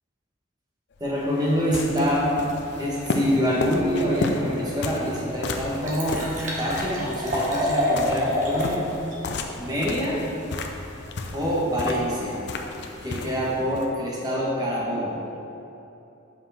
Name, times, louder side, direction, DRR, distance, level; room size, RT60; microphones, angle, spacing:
sound 1, 1.0-13.9, left 3 dB, 60° left, 0.5 m, -33 dB
voice 1, 1.0-2.3 2.8-6.2 6.6-8.8 9.6-10.2 11.3-12.4 13.0-15.1, equal, 20° right, -6 dB, 1.4 m, -25 dB
Liquid, 5.2-5.3 5.5-8.8 9.1-9.2, left 1 dB, 40° right, 1.2 m, -27 dB
5.7 x 4.8 x 5.7 m, 2.9 s
head